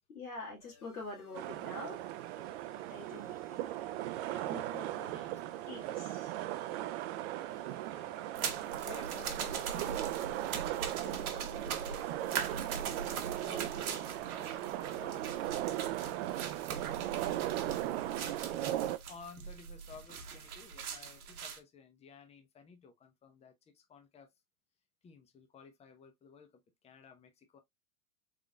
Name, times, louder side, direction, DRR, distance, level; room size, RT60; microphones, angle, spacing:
voice 1, 0.1-2.0 2.8-3.6 4.5-5.2 5.7-6.3, left 2 dB, 90° left, 1.8 m, -46 dB
sound 1, 0.6-17.0, left 4 dB, 70° left, 2.0 m, -62 dB
sound 2, 1.3-19.0, right 14 dB, 50° right, 0.5 m, -38 dB
voice 2, 2.7-5.6 6.7-6.8 8.8-10.3 10.6-15.4 15.8-18.6 19.1-24.3 25.0-27.6, left 5 dB, 15° left, 0.7 m, -56 dB
sound 3, 8.3-21.6, right 6 dB, 80° right, 1.1 m, -41 dB
3.8 x 3.6 x 2.2 m
hypercardioid pair, 110°, 43 cm